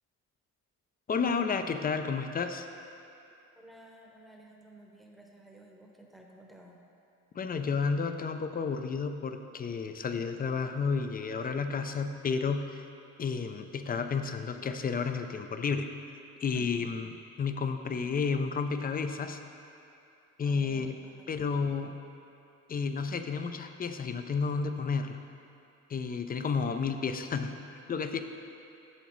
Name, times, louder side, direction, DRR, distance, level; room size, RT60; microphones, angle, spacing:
voice 1, 1.1-2.7 7.3-12.8 13.2-15.9 16.4-17.1 17.4-19.4 20.4-21.0 21.3-22.0 22.7-25.2 25.9-27.6 27.9-28.2, left 5 dB, 30° left, 8 dB, 0.4 m, -31 dB
voice 2, 3.5-6.8 16.5-16.9 20.4-21.3, right 1 dB, ahead, 0 dB, 0.9 m, -54 dB
8.1 x 6.9 x 3.1 m, 2.7 s
cardioid pair, 90°, 30 cm